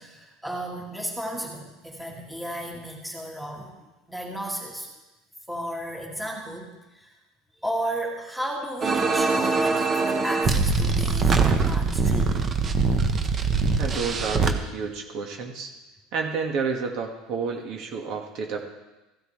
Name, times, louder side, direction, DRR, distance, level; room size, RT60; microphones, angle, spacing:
voice 1, 0.0-3.7 4.1-4.9 5.5-7.1 7.6-12.5, right 1 dB, 5° right, -1 dB, 2.2 m, -34 dB
sound 1, 8.8-14.5, right 4 dB, 30° right, 1.0 m, -22 dB
voice 2, 13.8-15.7 16.1-18.6, right 5 dB, 50° right, 2 dB, 1.7 m, -30 dB
16.0 x 12.5 x 3.2 m, 1.1 s
cardioid pair, 140°, 0 cm